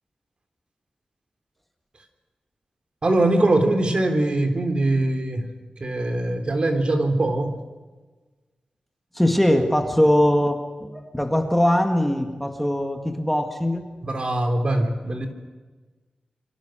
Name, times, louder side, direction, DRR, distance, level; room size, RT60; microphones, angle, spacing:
voice 1, 3.0-5.5 5.8-7.6 14.0-15.3, right 2 dB, 45° right, 5 dB, 3.4 m, -22 dB
voice 2, 9.1-13.9, left 1 dB, 5° left, 4 dB, 2.1 m, -21 dB
27.5 x 24.0 x 6.5 m, 1.3 s
wide cardioid pair, 110°, 2 cm